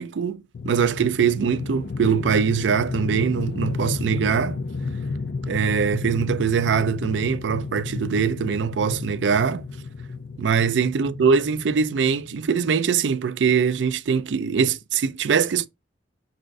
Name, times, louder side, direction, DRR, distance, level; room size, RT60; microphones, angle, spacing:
voice 1, 0.0-4.6 5.5-9.6 10.4-15.7, right 6 dB, 80° right, 0.4 m, -22 dB
sound 1, 0.5-12.8, left 3 dB, 60° left, 0.4 m, -32 dB
4.2 x 2.5 x 4.7 m
head